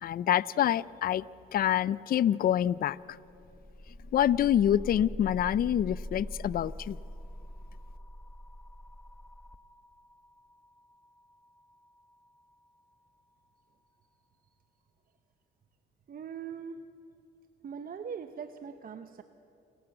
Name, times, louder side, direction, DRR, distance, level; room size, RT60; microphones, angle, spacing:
voice 1, 0.0-1.2 1.5-3.0 4.1-7.0, left 11 dB, 50° left, 20 dB, 0.4 m, -26 dB
sound 1, 3.1-12.9, equal, 10° left, 0.7 m, -44 dB
voice 2, 16.1-16.9 17.6-19.2, right 7 dB, 45° right, 9 dB, 0.8 m, -41 dB
28.5 x 12.0 x 7.8 m, 2.7 s
cardioid pair, 90°, 20 cm